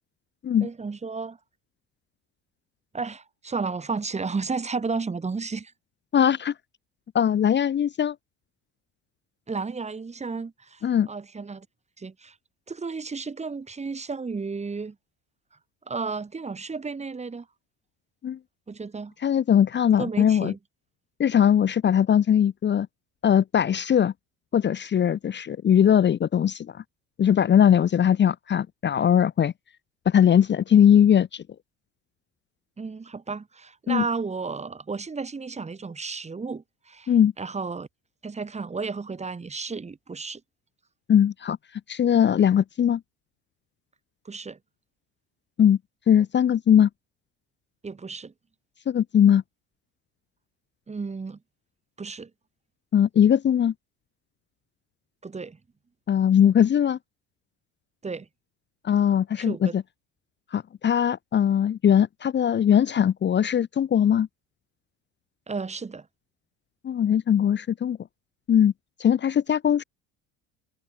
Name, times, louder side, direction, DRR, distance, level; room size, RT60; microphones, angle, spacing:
voice 1, 0.6-1.4 2.9-5.7 9.5-11.7 12.0-12.4 12.7-15.0 15.9-17.5 18.7-19.1 20.0-20.6 32.8-37.9 38.2-40.4 44.3-44.6 47.8-48.3 50.9-51.4 52.0-52.3 55.2-55.6 58.0-58.3 59.4-59.7 65.5-66.1, right 4 dB, 20° right, 2.3 m, -33 dB
voice 2, 6.1-6.5 7.1-8.1 10.8-11.1 18.2-18.4 19.2-20.5 21.2-22.9 23.2-24.1 24.5-26.8 27.2-29.5 30.1-31.4 33.9-34.0 37.1-37.3 41.1-41.6 41.9-43.0 45.6-45.8 46.1-46.9 48.9-49.4 52.9-53.7 56.1-57.0 58.8-59.8 60.5-64.3 66.8-68.0 68.5-68.7 69.0-69.8, left 9 dB, 35° left, 1.0 m, -20 dB
supercardioid pair, 90°, 32 cm